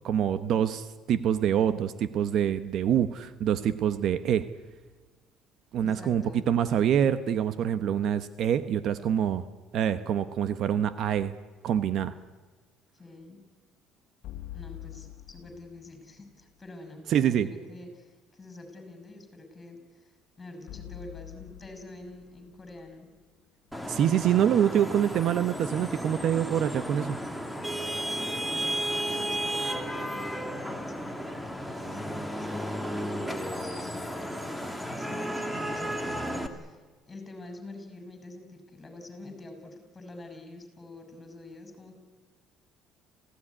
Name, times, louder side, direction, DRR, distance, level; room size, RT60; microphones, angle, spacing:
voice 1, 0.0-4.5 5.7-9.4 9.7-11.3 11.6-12.1 17.1-17.5 23.9-27.2, right 9 dB, 55° right, 12 dB, 1.0 m, -25 dB
voice 2, 5.8-6.4 13.0-13.4 14.5-23.1 28.0-32.1 32.4-36.8 37.1-41.9, left 2 dB, 20° left, 6 dB, 6.9 m, -47 dB
sound 1, 14.2-16.4 20.7-23.9, left 13 dB, 75° left, 1.6 m, -46 dB
Vehicle horn car horn honking / Traffic noise roadway noise, 23.7-36.5, equal, ahead, 2.2 m, -33 dB
28.0 x 16.5 x 9.9 m, 1.4 s
cardioid pair, 120°, 0 cm